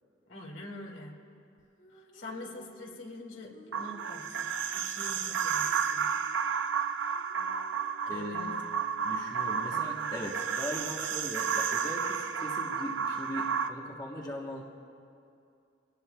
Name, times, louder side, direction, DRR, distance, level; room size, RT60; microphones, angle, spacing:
voice 1, 0.3-1.2 1.9-6.1 8.1-8.6 9.6-10.1, left 1 dB, 75° left, -1 dB, 2.3 m, -45 dB
sound 1, 1.6-8.6, left 1 dB, 45° left, 2.0 m, -59 dB
sound 2, 3.7-13.7, right 7 dB, 70° right, 0.6 m, -32 dB
voice 2, 8.1-8.5 9.0-14.6, equal, 20° left, -2 dB, 1.1 m, -39 dB
24.5 x 18.5 x 2.3 m, 2.5 s
head